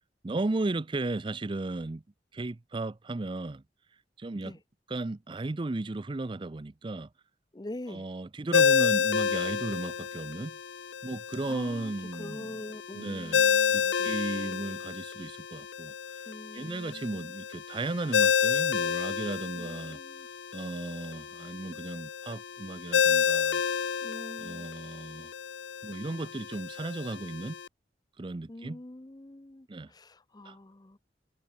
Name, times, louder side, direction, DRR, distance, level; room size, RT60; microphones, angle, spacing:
voice 1, 0.2-2.0 2.3-3.6 4.2-4.6 4.9-7.1 7.9-10.6 11.0-12.7 12.9-20.0 20.5-23.6 24.4-25.3 25.8-27.6 28.2-28.8 29.7-29.9 30.4-30.6, right 2 dB, 25° right, 0.5 m, -35 dB
voice 2, 7.5-8.1 11.5-11.9 12.2-14.8 16.3-17.3 19.5-20.3 24.0-24.7 28.5-29.7 29.9-31.0, left 1 dB, 20° left, 0.7 m, -44 dB
Ringtone, 8.5-27.7, left 6 dB, 90° left, 0.7 m, -30 dB
head